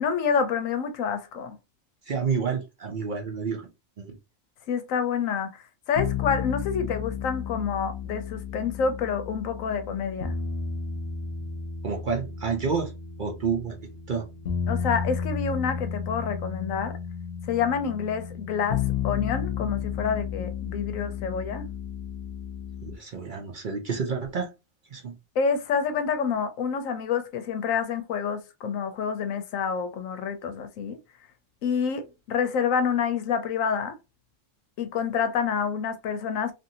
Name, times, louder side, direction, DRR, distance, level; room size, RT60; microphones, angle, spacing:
voice 1, 0.0-1.6 4.7-10.3 14.7-16.9 17.5-21.7 25.4-31.0 31.6-34.0 34.8-36.5, left 6 dB, 90° left, 1.0 m, -28 dB
voice 2, 2.1-3.7 4.0-4.2 11.8-12.9 13.2-13.8 14.1-14.3 22.8-24.5 24.9-25.1, right 5 dB, 55° right, 0.6 m, -29 dB
sound 1, 6.0-23.0, left 7 dB, 65° left, 0.9 m, -33 dB
2.9 x 2.6 x 2.7 m
omnidirectional pair, 1.4 m